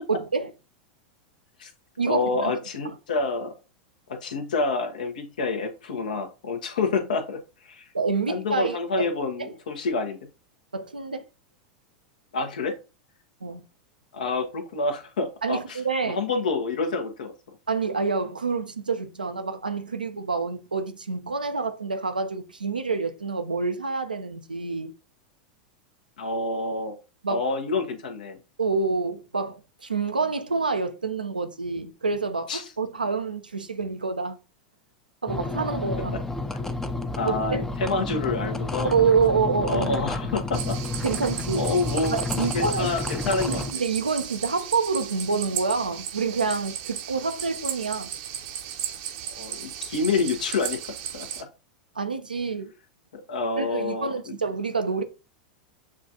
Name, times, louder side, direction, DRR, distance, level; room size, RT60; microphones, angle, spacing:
voice 1, 0.1-0.5 2.0-2.5 7.9-9.1 9.4-9.5 10.7-11.2 13.4-13.7 15.4-16.2 17.7-24.9 27.2-27.5 28.6-34.4 35.2-36.1 37.2-37.6 38.8-40.0 41.0-41.7 42.1-42.9 43.5-48.1 52.0-52.7 53.6-55.0, right 4 dB, 90° right, 0.5 m, -27 dB
voice 2, 2.1-3.5 4.1-7.9 8.3-10.2 12.3-12.8 14.1-17.3 26.2-27.0 27.3-28.4 32.5-32.7 36.1-36.2 37.2-38.9 39.6-40.8 41.5-43.6 49.3-51.3 53.1-54.3, left 3 dB, 70° left, 0.9 m, -28 dB
sound 1, 35.3-43.7, left 2 dB, 10° left, 0.5 m, -30 dB
sound 2, 40.5-51.4, right 10 dB, 55° right, 0.7 m, -35 dB
7.2 x 2.4 x 2.8 m
figure-of-eight pair, 90°, 5 cm